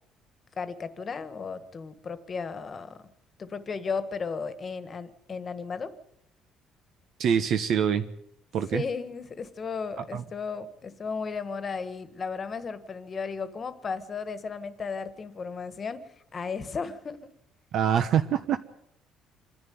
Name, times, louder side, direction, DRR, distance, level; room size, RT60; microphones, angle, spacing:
voice 1, 0.6-3.0 3.4-5.9 8.7-16.0 16.3-17.3, left 5 dB, 30° left, 11 dB, 1.6 m, -35 dB
voice 2, 7.2-8.0 8.5-8.8 10.1-10.2 17.7-18.6, right 8 dB, 55° right, 8 dB, 1.1 m, -24 dB
26.5 x 11.0 x 9.5 m, 0.77 s
cardioid pair, 145°, 0 cm